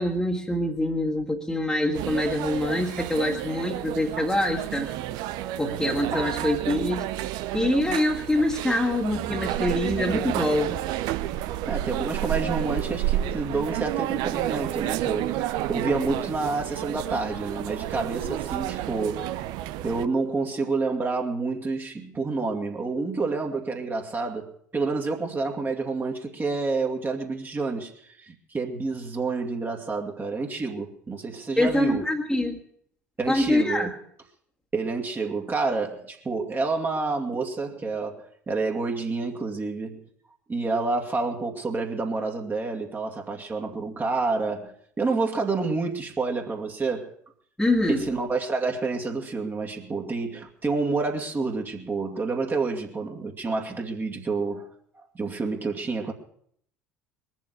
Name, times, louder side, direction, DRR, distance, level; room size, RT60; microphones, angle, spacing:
voice 1, 0.0-4.9 5.6-7.1 7.5-10.8 31.6-32.6 33.3-33.9 47.6-48.1, left 1 dB, 5° left, -2 dB, 2.0 m, -25 dB
sound 1, 1.9-20.0, right 13 dB, 55° right, 0.8 m, -30 dB
voice 2, 11.7-19.4 19.8-32.0 33.2-33.9 34.7-40.0 40.5-47.1 47.9-54.7 55.0-56.1, right 3 dB, 25° right, 1 dB, 2.3 m, -29 dB
21.5 x 7.4 x 8.1 m, 0.64 s
figure-of-eight pair, 65°, 8 cm